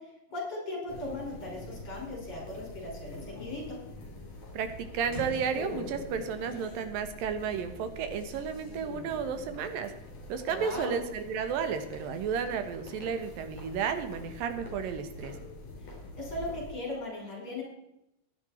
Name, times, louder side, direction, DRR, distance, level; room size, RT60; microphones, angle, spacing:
voice 1, 0.3-3.6 10.5-10.9 16.2-17.6, left 2 dB, 45° left, -2 dB, 6.7 m, -38 dB
sound 1, 0.9-16.7, left 2 dB, 60° left, 4.6 m, -44 dB
voice 2, 4.5-9.9 10.3-15.4, right 6 dB, 85° right, 8 dB, 3.0 m, -33 dB
16.0 x 11.0 x 4.4 m, 0.84 s
omnidirectional pair, 3.9 m